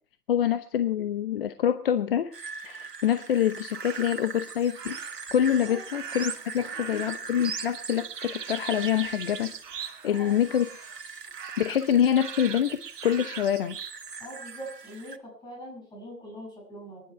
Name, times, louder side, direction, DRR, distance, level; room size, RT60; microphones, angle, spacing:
voice 1, 0.3-2.3 2.6-5.0 5.3-9.5 10.0-10.7 11.6-13.8, left 9 dB, 40° left, 11 dB, 0.8 m, -26 dB
sound 1, 2.3-15.2, right 5 dB, 90° right, 1.6 m, -41 dB
sound 2, 3.7-4.3 4.8-5.3 5.9-10.2 10.5-11.0 11.3-14.0, right 7 dB, 50° right, 2.1 m, -40 dB
voice 2, 6.6-7.1 10.1-10.4 14.2-17.0, equal, 10° left, -3 dB, 7.6 m, -42 dB
24.5 x 11.0 x 4.6 m, 0.43 s
hypercardioid pair, 140°, 46 cm